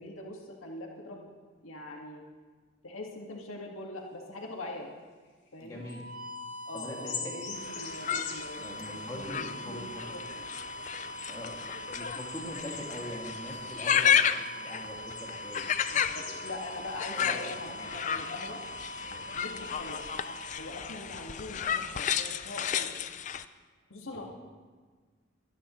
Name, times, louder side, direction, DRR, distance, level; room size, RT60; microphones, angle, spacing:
voice 1, 0.0-1.4 1.6-2.2 2.8-4.9 5.5-5.8 6.6-10.4 11.3-11.4 13.9-14.1 15.9-18.6 19.3-20.0 20.6-22.9 23.9-24.3, left 2 dB, 90° left, -1 dB, 2.1 m, -42 dB
sound 1, 5.3-6.0 6.3-6.4 6.8-8.9 10.5-10.6 10.9-11.3 11.9-13.9 15.1-16.9 17.2-17.6 19.3-19.4 20.8-20.9, left 6 dB, 60° left, 2.4 m, -43 dB
voice 2, 5.6-6.0 6.7-7.1 8.6-10.2 11.3-14.1 14.5-15.6 16.1-16.3 17.1-17.8 19.0-19.3 24.1-24.3, left 1 dB, 20° left, -3 dB, 2.4 m, -43 dB
sound 2, 5.8-21.6, right 1 dB, 45° right, 3.6 m, -43 dB
sound 3, 7.6-23.4, left 8 dB, 35° left, 0.4 m, -33 dB
23.5 x 10.5 x 3.2 m, 1.5 s
head